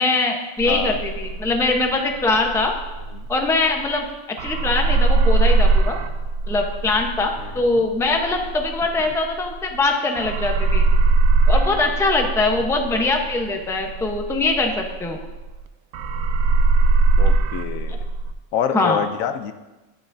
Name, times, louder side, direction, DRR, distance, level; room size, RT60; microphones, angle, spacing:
voice 1, 0.0-2.7 3.3-4.1 4.4-6.0 6.5-10.8 11.5-15.2 18.7-19.0, left 3 dB, 5° left, 2 dB, 0.6 m, -22 dB
sound 1, 0.6-4.1 4.4-9.9 10.2-15.6 15.9-18.3, right 3 dB, 80° right, 1.0 m, -21 dB
voice 2, 0.7-1.0 3.1-3.3 7.4-7.8 9.0-9.1 17.2-18.0 18.5-19.5, left 8 dB, 80° left, 9 dB, 1.0 m, -27 dB
11.5 x 9.4 x 2.6 m, 1.1 s
omnidirectional pair, 1.4 m